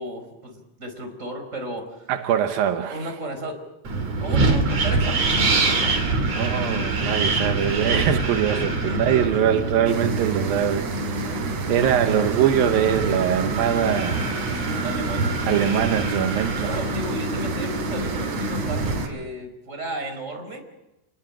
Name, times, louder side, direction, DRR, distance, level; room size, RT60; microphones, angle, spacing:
voice 1, 0.0-2.1 2.9-3.6 4.2-6.0 8.6-9.4 14.8-15.3 16.6-20.6, right 1 dB, 15° right, 4.7 m, -34 dB
voice 2, 2.1-3.0 6.4-14.3 15.5-16.7, right 10 dB, 80° right, 2.0 m, -23 dB
Wind, 3.8-19.0, right 3 dB, 35° right, 3.8 m, -25 dB
sound 1, 9.9-19.1, right 5 dB, 60° right, 5.7 m, -36 dB
29.0 x 20.5 x 8.8 m
omnidirectional pair, 5.6 m